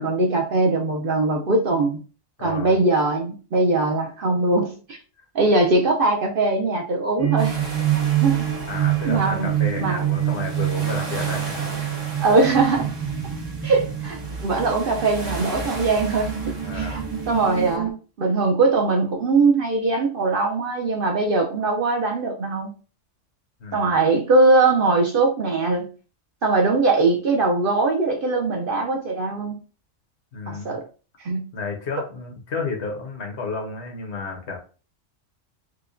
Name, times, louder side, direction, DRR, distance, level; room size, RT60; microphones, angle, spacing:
voice 1, 0.0-2.0 2.4-5.0 5.3-7.6 8.2-8.5 9.0-9.5 9.8-10.0 12.2-12.9 13.6-17.0 17.3-17.9 18.2-22.7 23.7-25.9 26.4-29.6 30.5-30.8 31.2-31.4, right 3 dB, 55° right, 2 dB, 0.7 m, -21 dB
voice 2, 2.4-2.7 8.7-11.6 16.6-17.1 23.6-23.9 30.3-30.8 31.5-34.6, left 4 dB, 65° left, 1 dB, 1.2 m, -32 dB
sound 1, 7.2-17.9, right 11 dB, 30° right, 0.4 m, -26 dB
sound 2, 7.4-17.8, right 1 dB, 90° right, 1.7 m, -37 dB
4.8 x 2.2 x 2.5 m, 0.36 s
omnidirectional pair, 1.3 m